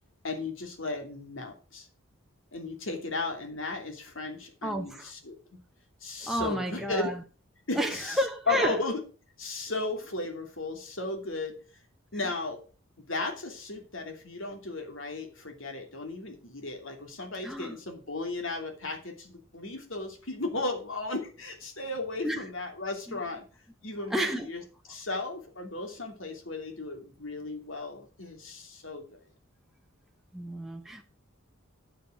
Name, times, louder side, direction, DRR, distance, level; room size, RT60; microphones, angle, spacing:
voice 1, 0.2-1.9 2.5-5.4 6.0-7.1 7.7-8.2 8.5-9.0 9.4-11.5 12.1-12.6 13.1-23.5 23.8-24.6 24.9-29.2, left 3 dB, 65° left, 2.9 m, -35 dB
voice 2, 4.6-5.1 6.2-7.2 7.7-8.8 12.1-12.2 17.4-17.8 22.2-22.4 23.1-23.2 24.1-24.5 30.3-31.0, equal, ahead, 1.0 m, -31 dB
9.3 x 7.4 x 6.2 m
head